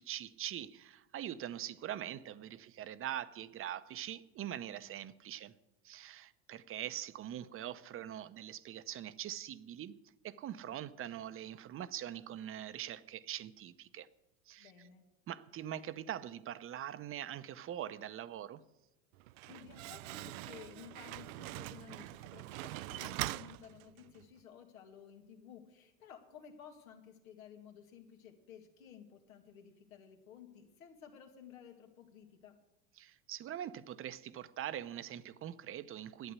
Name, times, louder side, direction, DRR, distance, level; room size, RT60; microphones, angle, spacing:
voice 1, 0.0-5.5 5.8-10.0 10.2-14.1 14.5-14.7 15.3-18.6 33.0-36.3, right 11 dB, 30° right, 0.8 m, -43 dB
voice 2, 4.5-4.9 14.6-15.0 19.5-32.6, left 8 dB, 85° left, 2.4 m, -55 dB
Slam, 19.1-24.2, right 18 dB, 70° right, 0.5 m, -43 dB
11.5 x 8.7 x 8.3 m
hypercardioid pair, 100°, 41 cm